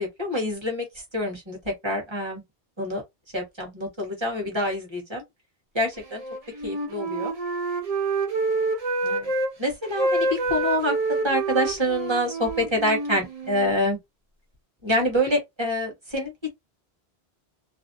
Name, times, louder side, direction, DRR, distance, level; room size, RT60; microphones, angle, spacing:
voice 1, 0.0-2.4 2.8-3.0 3.3-5.2 5.7-6.2 6.6-7.3 9.0-9.3 9.6-14.0 14.8-16.5, equal, 25° right, 1.2 m, -26 dB
Wind instrument woodwind instrument, 6.1-9.5 9.8-13.7, right 3 dB, 40° right, 0.7 m, -27 dB
2.6 x 2.0 x 2.6 m
omnidirectional pair, 1.1 m